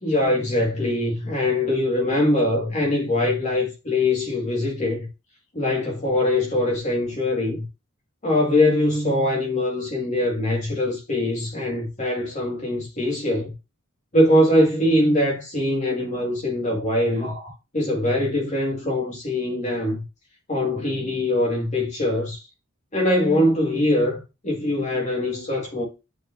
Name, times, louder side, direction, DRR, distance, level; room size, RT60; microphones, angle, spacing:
voice 1, 0.0-5.1 5.5-7.7 8.2-13.5 14.1-20.0 20.5-22.4 22.9-25.8, left 1 dB, 35° left, 1.8 m, -22 dB
8.4 x 4.6 x 2.6 m
head